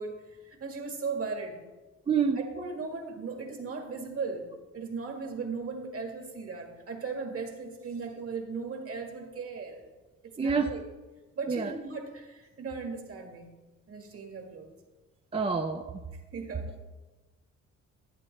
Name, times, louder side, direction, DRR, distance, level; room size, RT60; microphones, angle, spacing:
voice 1, 0.0-1.6 2.5-9.8 10.2-10.8 11.4-13.5 13.9-14.7 16.3-16.7, right 4 dB, 50° right, 3 dB, 1.8 m, -37 dB
voice 2, 2.1-2.4 10.4-10.8 11.5-11.7 15.3-15.9, right 5 dB, 20° right, 5 dB, 0.5 m, -27 dB
10.5 x 9.0 x 3.2 m, 1.2 s
cardioid pair, 90°, 30 cm